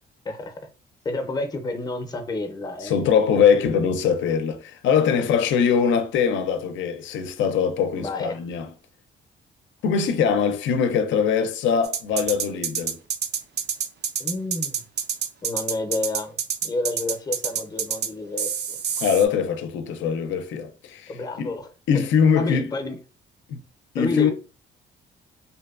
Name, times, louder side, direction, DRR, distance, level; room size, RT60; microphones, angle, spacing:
voice 1, 0.2-0.6 1.0-3.1 8.0-8.4 14.2-14.8 15.4-18.8 21.1-22.0 22.3-23.0 24.0-24.3, left 2 dB, 20° left, 0.5 m, -30 dB
voice 2, 2.8-8.7 9.8-13.0 19.0-21.1 21.4-21.5 21.9-22.7 23.5-23.6 23.9-24.3, left 7 dB, 70° left, 0.4 m, -22 dB
sound 1, 11.8-18.1 18.4-19.3, right 8 dB, 55° right, 0.4 m, -27 dB
2.7 x 2.2 x 2.3 m
cardioid pair, 90°, 20 cm